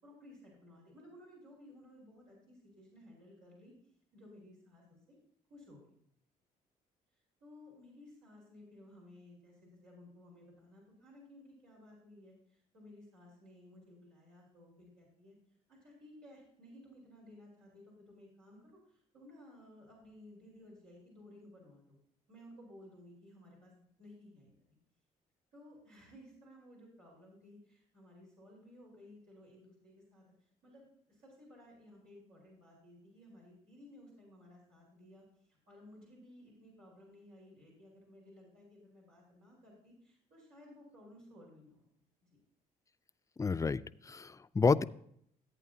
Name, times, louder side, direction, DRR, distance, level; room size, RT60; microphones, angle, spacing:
voice 1, 0.0-3.7 4.1-5.1 5.5-5.9 7.4-15.3 15.7-21.9 22.3-23.7 24.0-24.7 25.5-30.2 30.6-41.9, left 1 dB, 85° right, -5 dB, 4.4 m, -57 dB
voice 2, 43.4-43.8 44.1-44.8, left 4 dB, 20° left, 15 dB, 0.4 m, -29 dB
14.5 x 8.6 x 2.8 m, 0.69 s
supercardioid pair, 65°, 16 cm